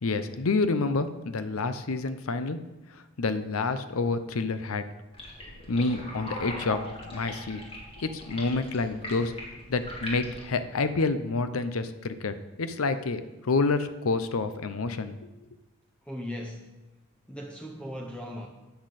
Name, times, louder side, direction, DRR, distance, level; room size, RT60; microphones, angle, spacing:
voice 1, 0.0-2.6 2.9-4.8 5.7-7.6 8.0-9.3 9.7-15.2, left 3 dB, 70° left, 11 dB, 0.6 m, -28 dB
sound 1, 5.1-10.5, left 1 dB, 25° left, 2.7 m, -41 dB
voice 2, 16.0-16.8 17.3-18.5, equal, 5° left, 1 dB, 0.6 m, -38 dB
12.5 x 8.1 x 4.2 m, 1.1 s
head